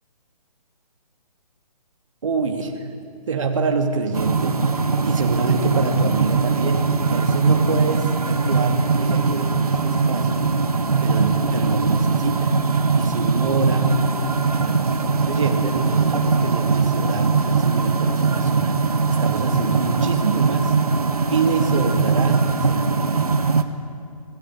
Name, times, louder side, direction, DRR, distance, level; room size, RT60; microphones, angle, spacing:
voice 1, 2.2-2.9 3.3-10.5 11.0-12.6 13.0-14.0 14.5-18.8 19.2-20.8 21.3-23.2, right 4 dB, 50° right, 3 dB, 3.0 m, -26 dB
sound 1, 4.1-23.6, right 4 dB, 70° right, 1.6 m, -21 dB
26.5 x 19.0 x 8.1 m, 2.5 s
figure-of-eight pair, 135°, 20 cm